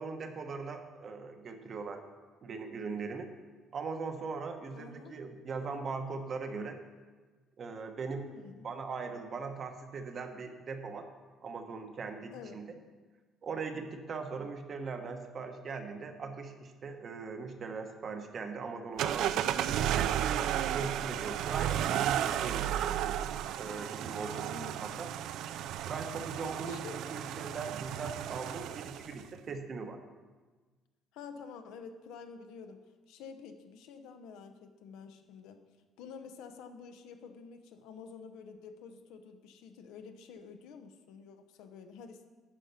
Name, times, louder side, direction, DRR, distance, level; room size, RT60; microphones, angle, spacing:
voice 1, 0.0-2.0 2.4-3.3 3.7-6.8 7.6-8.3 8.6-11.0 11.4-12.6 13.4-20.4 20.7-23.3 23.6-24.5 24.8-25.1 25.9-30.0, right 4 dB, 30° right, 6 dB, 0.9 m, -40 dB
voice 2, 4.7-5.2 8.1-8.7 12.3-12.6 24.2-25.0 26.6-27.0 31.1-35.6 36.0-42.3, left 5 dB, 85° left, 7 dB, 0.9 m, -49 dB
sound 1, 19.0-29.2, right 11 dB, 65° right, 0.3 m, -33 dB
9.9 x 5.7 x 6.7 m, 1.3 s
cardioid pair, 170°, 0 cm